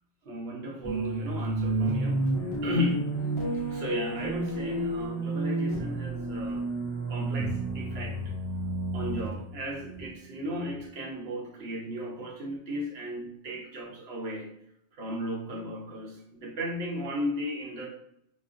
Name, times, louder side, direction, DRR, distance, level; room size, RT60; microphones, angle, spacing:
voice 1, 0.2-2.3 2.6-3.2 3.7-6.7 7.1-8.3 8.9-14.5 14.9-17.9, left 1 dB, 65° right, -1 dB, 0.9 m, -35 dB
sound 1, 0.8-10.7, right 2 dB, 45° left, 0.4 m, -31 dB
2.3 x 2.2 x 2.4 m, 0.74 s
omnidirectional pair, 1.2 m